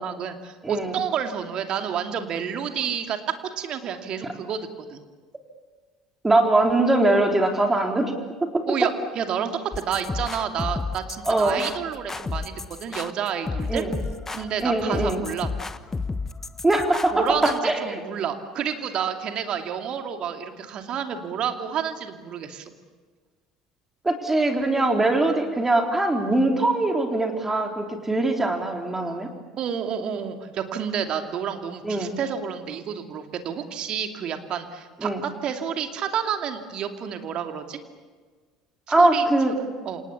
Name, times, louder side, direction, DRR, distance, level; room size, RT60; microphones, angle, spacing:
voice 1, 0.0-3.2 3.6-5.0 8.7-13.8 14.3-15.5 17.1-22.7 29.6-37.8 38.9-39.2 39.6-40.0, right 8 dB, 45° right, 6 dB, 2.6 m, -30 dB
voice 2, 6.2-8.1 8.4-8.6 11.3-11.6 13.7-13.9 14.6-15.2 16.6-18.0 24.0-29.3 31.8-32.1 35.0-35.2 38.9-39.5, right 2 dB, 15° right, 3 dB, 3.9 m, -22 dB
sound 1, 9.7-17.6, left 4 dB, 20° left, 1.3 m, -32 dB
28.5 x 27.0 x 7.2 m, 1.4 s
figure-of-eight pair, 60°, 2 cm